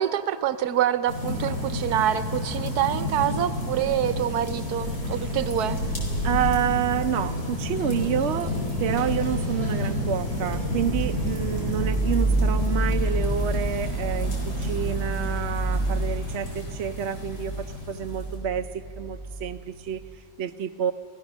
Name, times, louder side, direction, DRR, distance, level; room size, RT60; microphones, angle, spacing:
voice 1, 0.0-5.8, right 10 dB, 85° right, 13 dB, 1.3 m, -26 dB
sound 1, 1.1-18.3, left 1 dB, 90° left, 5.1 m, -30 dB
voice 2, 6.2-8.5 8.8-20.0 20.4-20.9, right 9 dB, 65° right, 7 dB, 0.7 m, -29 dB
sound 2, 10.3-20.2, right 1 dB, 15° left, 0.9 m, -28 dB
26.0 x 17.0 x 6.2 m, 2.5 s
omnidirectional pair, 1.6 m